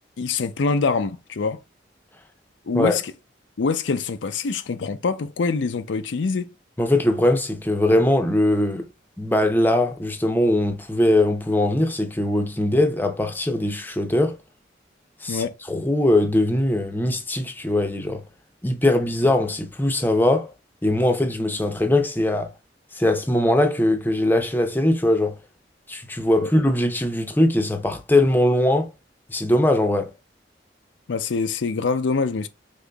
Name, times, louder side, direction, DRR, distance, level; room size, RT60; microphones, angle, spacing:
voice 1, 0.2-1.6 2.7-3.1 3.6-6.5 15.3-15.6 26.4-26.5 31.1-32.5, left 4 dB, 80° left, 0.5 m, -24 dB
voice 2, 6.8-8.8 9.2-14.4 15.2-18.2 18.6-20.5 20.8-22.5 22.9-25.4 25.9-28.9 29.3-30.1, left 1 dB, 10° left, 0.6 m, -21 dB
5.3 x 3.6 x 2.3 m
head